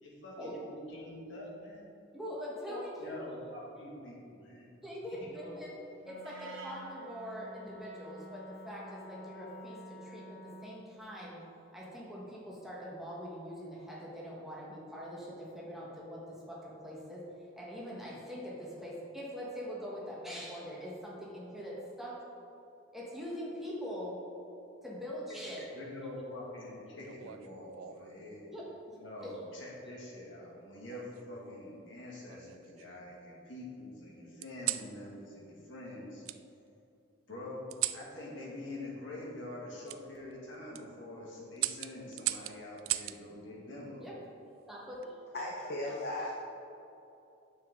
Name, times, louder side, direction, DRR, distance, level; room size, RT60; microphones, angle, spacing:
voice 1, 0.0-1.9 2.7-4.7 5.2-5.5 25.3-28.5 29.0-36.2 37.3-37.7 37.9-44.0, left 1 dB, 70° left, -4 dB, 2.1 m, -45 dB
voice 2, 2.1-3.1 4.8-5.8 6.0-11.4 11.7-17.3 17.6-22.2 22.9-24.2 24.8-25.7 28.5-29.0 29.2-29.4 44.0-44.1 44.7-45.2, equal, ahead, -6 dB, 1.3 m, -43 dB
Wind instrument woodwind instrument, 6.0-10.9, right 1 dB, 70° right, 1.2 m, -49 dB
sound 1, 27.0-28.2 29.2-29.6 30.9-31.6 32.3-33.2 34.4-34.9 36.2-36.4 37.7-38.1 39.9-40.0 40.5-40.8 41.6-43.2 44.7-45.1, right 15 dB, 90° right, 0.3 m, -38 dB
voice 3, 45.3-46.3, left 1 dB, 50° left, -3 dB, 0.9 m, -36 dB
9.5 x 7.1 x 3.7 m, 2.8 s
head